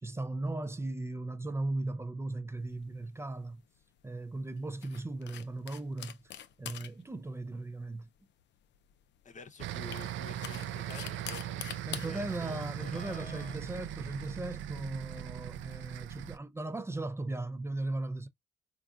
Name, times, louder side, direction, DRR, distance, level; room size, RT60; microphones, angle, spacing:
voice 1, 0.0-3.6 4.0-6.3 6.6-8.1 11.9-18.3, right 2 dB, 15° right, 0.4 m, -37 dB
sound 1, 2.6-15.2, left 10 dB, 65° left, 0.5 m, -48 dB
voice 2, 9.2-13.6, left 4 dB, 40° left, 0.8 m, -50 dB
sound 2, 9.6-16.4, right 12 dB, 75° right, 0.4 m, -39 dB
3.7 x 2.5 x 2.4 m
cardioid pair, 90°, 20 cm